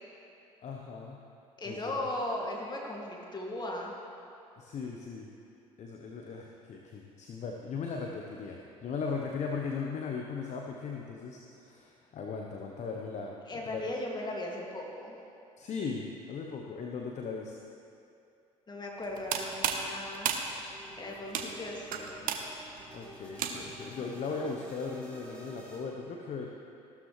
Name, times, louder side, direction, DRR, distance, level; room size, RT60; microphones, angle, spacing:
voice 1, 0.6-1.2 1.6-2.1 4.6-5.3 5.8-13.8 15.6-17.5 22.9-26.5, left 5 dB, 40° left, 1 dB, 1.0 m, -38 dB
voice 2, 1.6-3.9 13.5-15.2 18.7-20.3 21.0-22.3, left 1 dB, 25° left, -1 dB, 2.3 m, -37 dB
sound 1, 19.0-23.9, right 7 dB, 55° right, 1.0 m, -35 dB
sound 2, 20.7-25.8, equal, 5° left, 3.1 m, -51 dB
14.5 x 12.5 x 3.2 m, 2.6 s
figure-of-eight pair, 55°, 18 cm